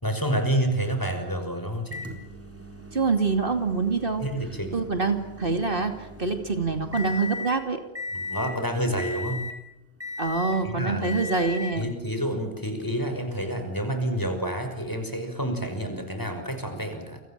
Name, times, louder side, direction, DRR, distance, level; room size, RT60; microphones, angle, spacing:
voice 1, 0.0-2.0 4.2-4.8 8.1-9.4 10.6-11.2 11.7-17.2, right 1 dB, 20° left, 6 dB, 5.7 m, -29 dB
Microwave oven, 1.9-7.6 8.0-8.6 9.0-9.6 10.0-10.6 11.0-11.9 12.8-12.9 14.9-15.0, left 2 dB, 15° right, 4.1 m, -37 dB
voice 2, 2.9-4.3 4.7-7.8 10.2-11.9, right 4 dB, 60° right, 6 dB, 2.8 m, -25 dB
29.5 x 24.5 x 7.5 m, 0.83 s
omnidirectional pair, 1.0 m